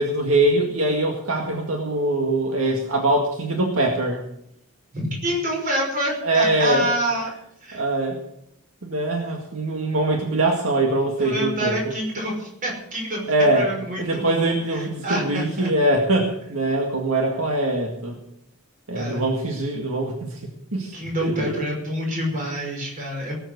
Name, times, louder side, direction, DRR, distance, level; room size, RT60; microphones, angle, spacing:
voice 1, 0.0-4.2 6.2-6.9 7.7-8.2 8.8-11.8 13.3-13.7 14.0-18.2 18.9-20.4 20.7-20.9 21.2-21.5, right 2 dB, 70° right, 1 dB, 2.0 m, -22 dB
voice 2, 4.9-7.3 7.6-7.8 11.2-13.3 13.5-15.7 19.0-19.2 20.9-23.4, right 1 dB, 35° right, 0 dB, 5.6 m, -27 dB
18.5 x 8.0 x 8.1 m, 0.75 s
head